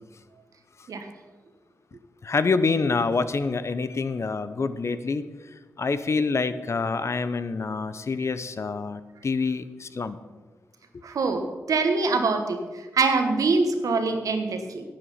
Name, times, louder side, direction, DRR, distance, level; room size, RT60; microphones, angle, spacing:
voice 1, 2.2-5.3 5.8-10.2, left 4 dB, 55° left, 13 dB, 0.7 m, -26 dB
voice 2, 11.0-12.6 12.9-14.8, right 4 dB, 75° right, 6 dB, 1.3 m, -24 dB
10.5 x 8.7 x 5.8 m, 1.3 s
supercardioid pair, 40°, 6 cm